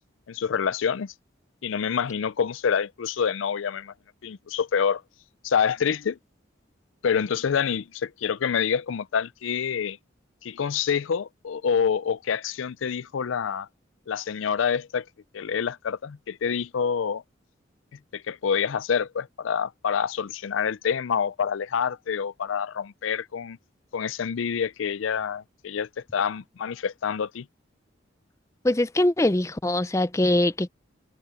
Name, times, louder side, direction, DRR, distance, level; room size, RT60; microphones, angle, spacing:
voice 1, 0.3-1.1 1.6-3.9 4.2-5.0 5.4-6.2 7.0-10.0 10.4-13.7 14.1-15.1 15.3-17.2 18.1-23.6 23.9-27.5, left 7 dB, 85° left, 0.4 m, -27 dB
voice 2, 28.6-30.7, left 1 dB, 15° left, 0.5 m, -22 dB
head